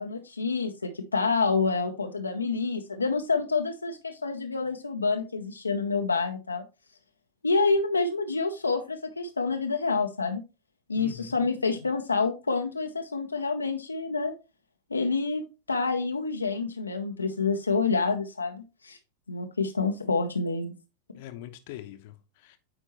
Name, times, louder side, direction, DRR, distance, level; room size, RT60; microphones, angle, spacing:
voice 1, 0.0-6.6 7.4-10.4 10.9-14.3 14.9-15.4 15.7-19.0 19.3-20.7, left 4 dB, 80° left, 0.6 m, -28 dB
voice 2, 11.0-11.4 21.1-22.6, left 13 dB, 50° left, 0.8 m, -43 dB
8.7 x 4.4 x 2.9 m
figure-of-eight pair, 90°, 0 cm